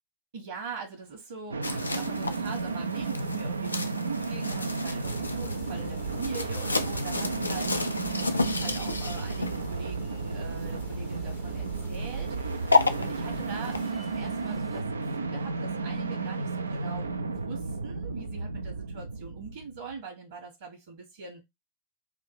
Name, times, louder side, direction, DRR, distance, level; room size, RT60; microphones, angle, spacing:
voice 1, 0.3-12.7 13.0-21.4, right 5 dB, 60° right, 1.5 m, -42 dB
sound 1, 1.5-20.0, right 3 dB, 75° right, 0.4 m, -33 dB
sound 2, 1.6-13.9, left 3 dB, 80° left, 0.4 m, -32 dB
sound 3, 5.0-14.8, right 2 dB, 10° right, 0.6 m, -48 dB
3.6 x 2.5 x 4.5 m
figure-of-eight pair, 90°, 0 cm